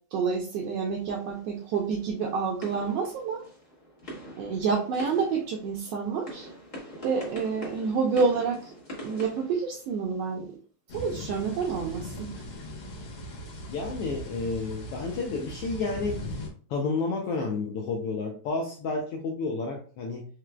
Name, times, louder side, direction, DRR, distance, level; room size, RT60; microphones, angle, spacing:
voice 1, 0.1-3.4 4.4-6.5 7.0-10.6 10.9-12.3, right 5 dB, 80° right, -1 dB, 1.5 m, -28 dB
sound 1, 1.2-10.3, equal, 45° left, 0.6 m, -44 dB
sound 2, 10.9-16.5, equal, 60° left, 1.8 m, -39 dB
voice 2, 13.7-16.3 16.7-20.3, left 3 dB, 85° left, 0 dB, 1.3 m, -31 dB
4.8 x 3.2 x 2.3 m, 0.43 s
omnidirectional pair, 3.4 m